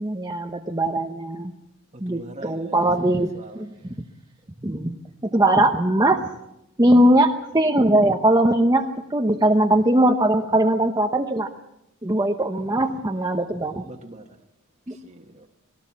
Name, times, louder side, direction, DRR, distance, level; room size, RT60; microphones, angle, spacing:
voice 1, 0.0-1.5 2.0-3.7 4.6-5.0 5.3-6.3 6.8-11.5 12.0-13.8 14.9-15.0, right 1 dB, 20° right, 2 dB, 1.0 m, -20 dB
voice 2, 1.9-3.9 6.9-7.3 13.8-14.4 14.9-15.5, right 1 dB, 35° right, 0 dB, 1.5 m, -42 dB
21.0 x 18.0 x 7.3 m, 0.86 s
head